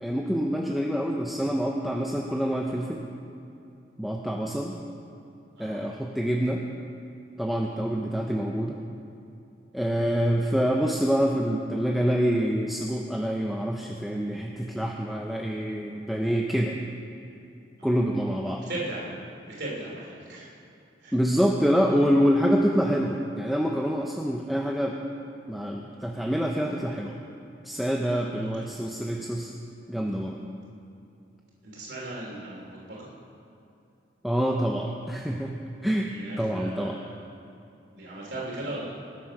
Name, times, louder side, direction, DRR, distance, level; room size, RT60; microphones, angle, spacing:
voice 1, 0.0-3.0 4.0-4.8 5.6-6.6 7.4-8.8 9.7-16.8 17.8-18.6 21.1-25.0 25.5-27.2 27.6-29.5 29.9-30.4 34.2-35.5 35.8-36.1 36.4-37.0, equal, ahead, 0 dB, 0.6 m, -26 dB
voice 2, 18.6-19.1 19.5-20.6 21.0-21.2 21.9-22.0 28.4-28.7 31.6-33.1 36.0-37.2 38.0-39.0, right 2 dB, 65° right, -4 dB, 3.1 m, -38 dB
20.5 x 7.6 x 6.0 m, 2.6 s
head